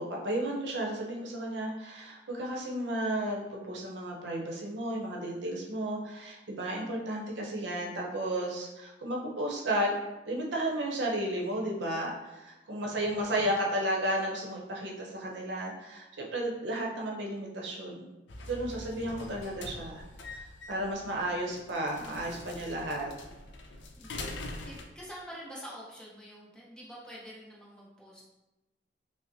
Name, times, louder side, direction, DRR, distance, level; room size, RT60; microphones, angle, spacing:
voice 1, 0.0-9.9 10.2-18.1 18.4-20.0 20.3-23.1, right 1 dB, 75° right, -1 dB, 0.7 m, -33 dB
sound 1, 18.3-24.9, left 2 dB, 80° left, 0.5 m, -43 dB
voice 2, 24.0-24.4 24.6-28.2, equal, 5° left, -6 dB, 0.6 m, -47 dB
5.4 x 2.0 x 2.7 m, 1.0 s
head